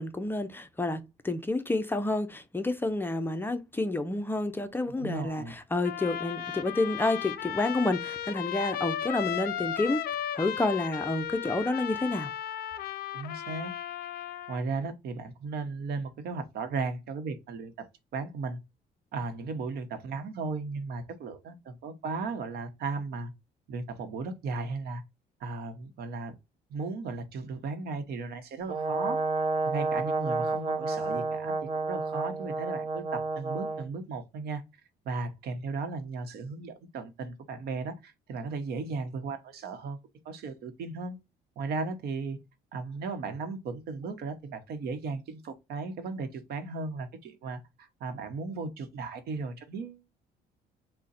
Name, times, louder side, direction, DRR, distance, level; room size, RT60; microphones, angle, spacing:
voice 1, 0.0-10.0 10.3-12.3, left 2 dB, 10° left, 0.5 m, -29 dB
voice 2, 5.0-5.5 13.1-13.7 14.5-18.6 19.1-23.3 23.7-25.0 25.4-26.3 26.7-29.2 29.6-31.5 31.8-34.6 35.0-40.0 40.2-41.2 41.6-42.4 42.7-50.0, right 4 dB, 70° right, 0.9 m, -36 dB
Trumpet, 5.8-14.6, left 11 dB, 60° left, 0.5 m, -35 dB
Brass instrument, 28.7-33.9, right 3 dB, 35° right, 0.9 m, -30 dB
3.7 x 2.1 x 4.1 m
cardioid pair, 110°, 17 cm